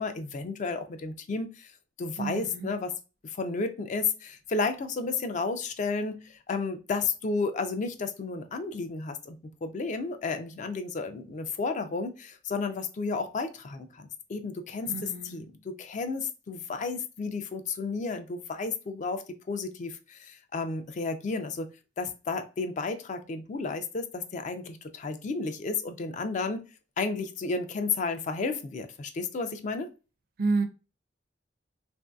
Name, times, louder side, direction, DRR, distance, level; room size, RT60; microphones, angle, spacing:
voice 1, 0.0-1.7 2.0-3.0 3.2-21.7 22.0-26.6 27.0-29.9, left 4 dB, 40° left, 0.4 m, -32 dB
voice 2, 2.2-2.7 14.9-15.4 30.4-30.7, right 3 dB, 55° right, 0.4 m, -29 dB
3.0 x 2.6 x 2.2 m
head